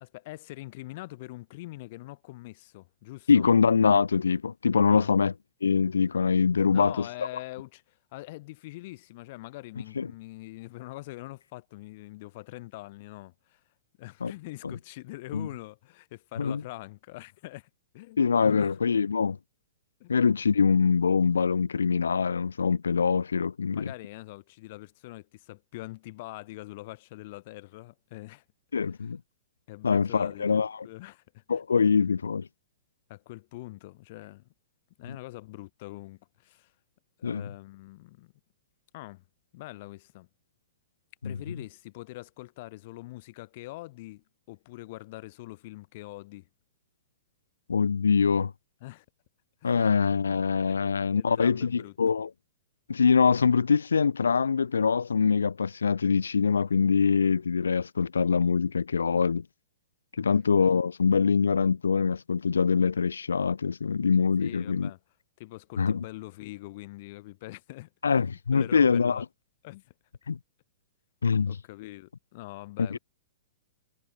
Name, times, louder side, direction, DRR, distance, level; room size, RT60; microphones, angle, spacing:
voice 1, 0.0-3.4 4.9-5.1 6.7-13.6 14.0-18.7 20.0-20.1 23.7-28.4 29.0-29.1 29.7-31.9 33.1-34.5 35.0-36.7 37.2-38.3 38.9-39.2 39.5-40.3 41.2-46.5 48.8-49.0 49.6-49.9 50.7-50.8 51.2-51.9 60.2-60.4 64.4-65.0 65.4-69.2 69.6-69.9 70.2-70.3 71.5-73.0, left 19 dB, 50° left, 3.1 m, -44 dB
voice 2, 3.3-5.3 5.6-7.1 10.0-10.1 14.2-14.3 15.3-15.5 16.4-16.6 18.2-19.4 20.1-23.9 28.7-29.2 29.8-30.7 31.5-32.5 35.1-35.2 37.2-37.4 41.2-41.4 47.7-48.5 49.6-52.3 52.9-59.4 60.2-64.9 65.8-66.0 68.0-69.2 70.3-70.4 71.2-71.6 72.8-73.0, left 5 dB, 75° left, 0.5 m, -24 dB
figure-of-eight pair, 110°, 0 cm